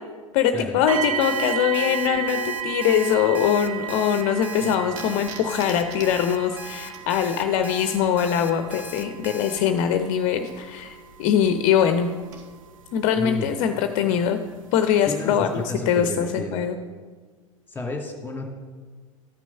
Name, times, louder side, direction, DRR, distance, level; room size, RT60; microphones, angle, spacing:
voice 1, 0.3-12.1 12.9-14.4 14.7-16.8, left 8 dB, 45° left, 8 dB, 0.6 m, -22 dB
sound 1, 0.9-13.8 14.6-14.7 15.3-15.4, right 9 dB, 75° right, 0.7 m, -34 dB
Alarm, 1.2-9.6, right 1 dB, 10° right, 1.0 m, -39 dB
sound 2, 4.9-12.5, right 3 dB, 55° right, 2.2 m, -47 dB
voice 2, 13.1-13.6 15.1-16.6 17.7-18.5, left 2 dB, 10° left, 1 dB, 2.3 m, -31 dB
13.5 x 6.2 x 5.5 m, 1.4 s
figure-of-eight pair, 90°, 17 cm